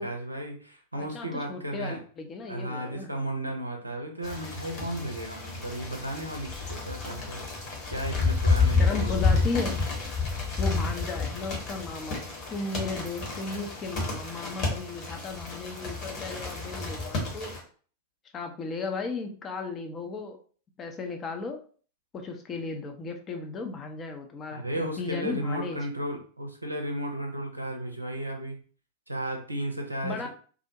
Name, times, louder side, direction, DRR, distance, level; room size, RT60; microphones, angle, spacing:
voice 1, 0.0-2.0 2.5-7.4 7.9-9.4 24.5-28.6 29.1-30.3, right 1 dB, 85° right, 2 dB, 0.5 m, -34 dB
voice 2, 0.9-3.1 8.8-9.8 10.6-17.6 18.3-20.4 20.8-21.6 22.1-25.8 30.0-30.3, left 4 dB, 25° left, 4 dB, 0.5 m, -35 dB
sound 1, 4.2-17.6, left 4 dB, 40° left, 1.0 m, -30 dB
2.4 x 2.1 x 2.7 m, 0.42 s
figure-of-eight pair, 90°, 0 cm